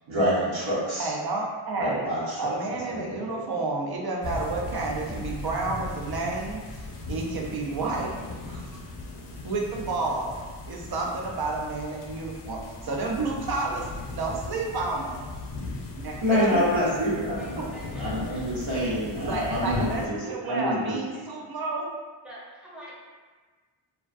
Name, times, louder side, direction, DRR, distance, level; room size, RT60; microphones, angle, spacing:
voice 1, 0.1-1.1 1.8-3.4 5.1-5.3 16.2-17.7 18.0-20.2 20.4-21.0, equal, 70° right, -9 dB, 0.9 m, -27 dB
voice 2, 1.0-2.0 2.4-8.2 8.5-8.6 9.4-10.3 10.7-13.9 14.1-15.2 16.0-16.8 19.2-21.9, right 3 dB, 50° right, -1 dB, 0.5 m, -30 dB
sound 1, 4.2-20.1, left 3 dB, 60° left, 0.5 m, -38 dB
voice 3, 17.1-19.0 19.2-19.4 20.2-20.5 21.1-21.3 22.2-22.9, equal, ahead, -7 dB, 0.6 m, -47 dB
2.3 x 2.3 x 2.4 m, 1.4 s
wide cardioid pair, 85°, 48 cm